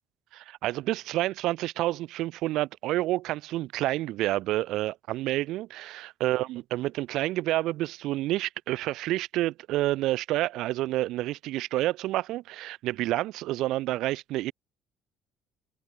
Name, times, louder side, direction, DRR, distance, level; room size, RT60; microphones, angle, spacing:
voice 1, 0.3-14.5, right 16 dB, 60° right, 0.3 m, -29 dB
figure-of-eight pair, 50°, 0 cm